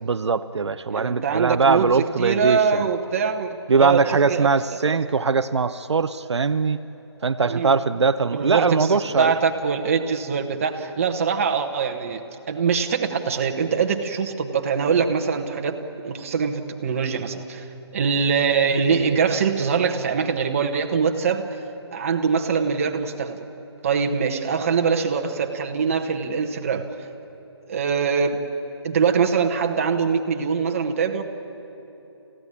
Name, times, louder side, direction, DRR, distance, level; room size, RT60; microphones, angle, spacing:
voice 1, 0.0-2.9 3.7-6.8 7.2-9.4, right 4 dB, 75° right, 10 dB, 0.8 m, -21 dB
voice 2, 0.9-1.9 2.2-4.5 4.8-5.0 7.5-7.7 8.3-15.7 16.0-17.7 17.9-21.5 21.9-23.4 23.8-26.9 27.7-28.4 28.8-31.2, right 6 dB, 30° right, 4 dB, 1.3 m, -23 dB
29.5 x 15.5 x 8.7 m, 3.0 s
hypercardioid pair, 170°, 14 cm